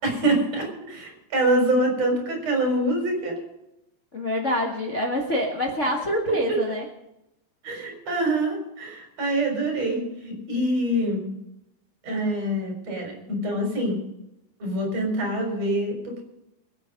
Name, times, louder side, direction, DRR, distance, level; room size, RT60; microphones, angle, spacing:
voice 1, 0.0-3.4 7.6-11.3 12.0-14.0 14.6-16.2, right 1 dB, 45° right, 1 dB, 5.2 m, -25 dB
voice 2, 4.1-6.9, left 1 dB, 75° left, -1 dB, 0.6 m, -26 dB
24.5 x 8.3 x 5.3 m, 0.85 s
omnidirectional pair, 4.2 m